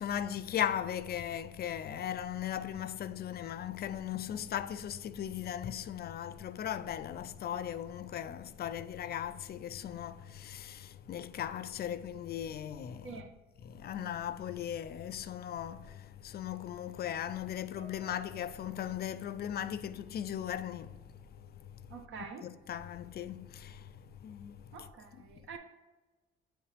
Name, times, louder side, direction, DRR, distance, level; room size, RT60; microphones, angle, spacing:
voice 1, 0.0-13.2 13.6-24.9 25.1-25.2, left 10 dB, 55° left, 0.4 m, -38 dB
Piano, 17.8-20.4 20.7-21.0 21.8-21.9, right 5 dB, 45° right, 1.6 m, -61 dB
voice 2, 21.9-22.5 24.7-25.6, right 5 dB, 80° right, 1.0 m, -46 dB
9.1 x 3.1 x 3.4 m
cardioid pair, 90°, 20 cm